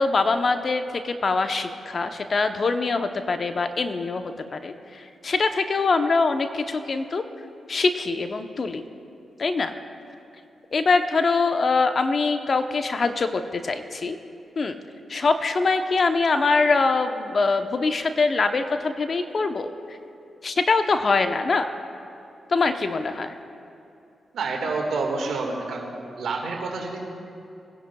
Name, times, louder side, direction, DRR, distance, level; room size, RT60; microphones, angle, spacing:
voice 1, 0.0-7.2 7.7-8.8 9.4-9.7 10.7-14.2 14.6-14.8 15.1-20.0 20.4-21.7 22.5-23.4, left 4 dB, 55° left, 7 dB, 0.8 m, -23 dB
voice 2, 24.3-27.0, right 3 dB, 75° right, 1 dB, 1.8 m, -28 dB
21.5 x 10.5 x 2.3 m, 2.6 s
supercardioid pair, 40°, 0 cm